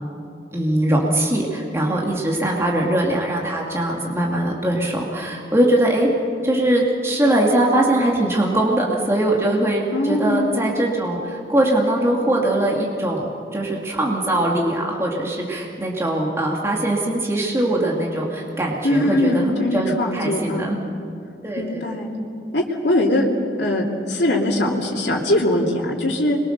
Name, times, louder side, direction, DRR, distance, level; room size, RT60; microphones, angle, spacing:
voice 1, 0.5-6.1 6.4-20.8 21.4-21.8, right 1 dB, 15° right, -2 dB, 2.5 m, -21 dB
voice 2, 9.9-10.5 18.8-20.7 21.6-22.1 22.5-23.2 23.6-26.4, left 1 dB, 80° left, -3 dB, 2.8 m, -21 dB
26.5 x 23.0 x 6.8 m, 2.5 s
head